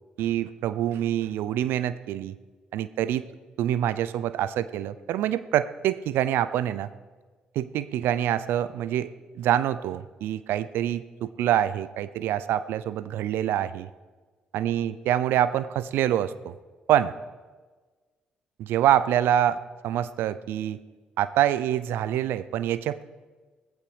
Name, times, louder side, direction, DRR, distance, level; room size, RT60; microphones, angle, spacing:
voice 1, 0.2-2.4 2.7-3.2 3.6-6.9 7.6-13.9 14.5-16.5 16.9-17.1 18.6-20.8 21.2-23.0, right 11 dB, 70° right, 16 dB, 0.4 m, -26 dB
18.5 x 15.0 x 3.3 m, 1.4 s
hypercardioid pair, 45°, 4 cm